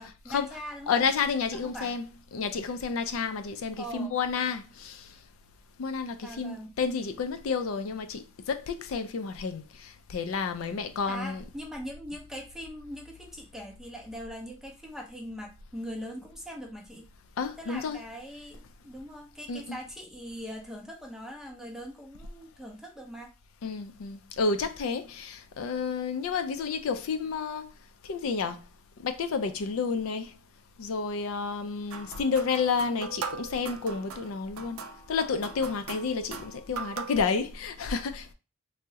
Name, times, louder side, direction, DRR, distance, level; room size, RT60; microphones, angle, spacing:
voice 1, 0.0-1.1 1.6-2.0 3.8-4.2 6.2-6.7 11.1-17.0 17.6-23.3 36.7-36.8, equal, ahead, 0.4 m, -41 dB
voice 2, 0.9-5.1 5.8-11.4 17.4-18.0 19.5-19.8 23.6-27.7 28.0-28.6 29.0-30.4 30.8-34.8 35.1-38.3, left 5 dB, 75° left, 0.4 m, -30 dB
sound 1, 31.9-37.3, right 5 dB, 75° right, 0.3 m, -40 dB
3.5 x 2.0 x 2.7 m
head